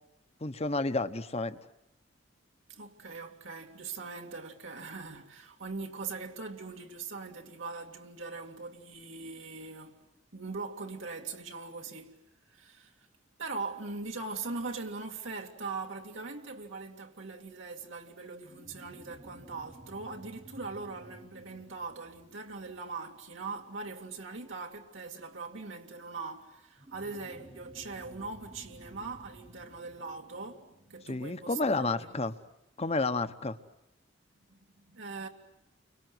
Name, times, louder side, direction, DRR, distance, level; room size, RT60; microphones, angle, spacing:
voice 1, 0.4-1.6 31.1-32.3 32.8-33.6, left 3 dB, 35° left, 1.1 m, -30 dB
voice 2, 2.7-10.0 10.3-12.2 12.5-13.1 13.4-32.1 34.5-35.3, right 4 dB, 80° right, 2.4 m, -41 dB
sound 1, 18.5-23.4 26.8-31.7, right 1 dB, 25° right, 1.2 m, -54 dB
30.0 x 25.0 x 8.0 m
head